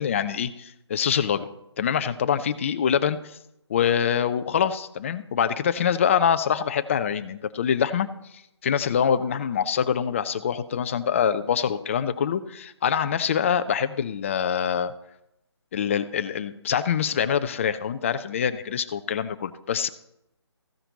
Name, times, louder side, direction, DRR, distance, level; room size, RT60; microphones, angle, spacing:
voice 1, 0.0-1.5 1.8-3.2 3.7-8.1 8.6-14.9 15.7-19.9, left 8 dB, 30° left, 12 dB, 0.6 m, -25 dB
15.0 x 10.0 x 4.0 m, 0.83 s
figure-of-eight pair, 150°, 15 cm